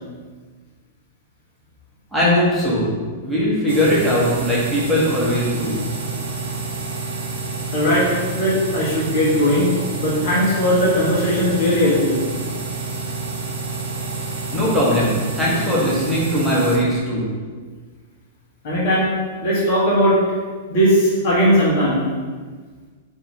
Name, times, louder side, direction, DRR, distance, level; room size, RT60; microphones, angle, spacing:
voice 1, 2.1-2.9 3.2-5.8 14.5-17.3, equal, ahead, -9 dB, 1.2 m, -19 dB
sound 1, 3.7-16.8, right 3 dB, 65° right, 0.6 m, -29 dB
voice 2, 7.7-9.7 10.0-12.2 14.3-14.5 18.6-19.1 19.4-20.2 20.7-22.0, equal, 50° left, -5 dB, 1.1 m, -18 dB
4.2 x 2.8 x 3.4 m, 1.5 s
figure-of-eight pair, 100°, 0 cm